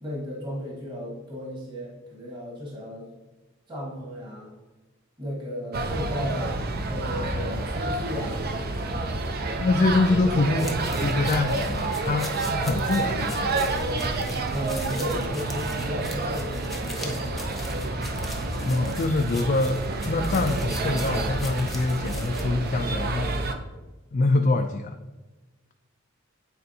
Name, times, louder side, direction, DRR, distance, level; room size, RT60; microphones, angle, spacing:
voice 1, 0.0-3.1 3.7-4.5 5.2-8.4 9.5-9.7 14.5-17.6, equal, 25° right, -4 dB, 1.4 m, -34 dB
sound 1, 5.7-23.5, right 2 dB, 50° right, 0.6 m, -29 dB
voice 2, 9.6-13.6 18.6-19.8 20.1-23.3 24.1-24.9, left 3 dB, 40° left, 4 dB, 0.4 m, -25 dB
sound 2, 10.6-22.4, left 1 dB, ahead, 0.8 m, -42 dB
9.3 x 4.4 x 2.8 m, 1.2 s
head